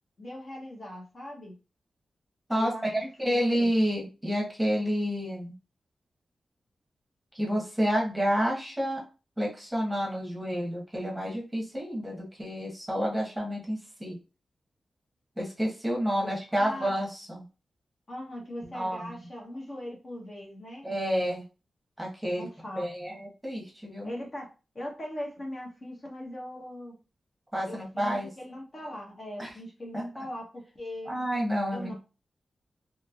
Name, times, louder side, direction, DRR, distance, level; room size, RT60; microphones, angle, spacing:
voice 1, 0.2-1.5 2.5-3.7 16.2-16.9 18.1-20.9 22.3-22.8 24.0-24.5 24.7-27.0 27.6-31.1 31.7-31.9, left 1 dB, 40° left, -1 dB, 0.9 m, -40 dB
voice 2, 2.5-5.5 7.3-9.0 9.4-14.2 15.4-17.4 18.6-19.3 20.8-21.4 22.0-22.5 22.7-24.1 27.5-28.3 29.4-29.5 29.9-30.0 31.0-31.9, equal, 5° right, -3 dB, 1.1 m, -29 dB
3.2 x 2.9 x 2.4 m, 0.32 s
wide cardioid pair, 125°, 0 cm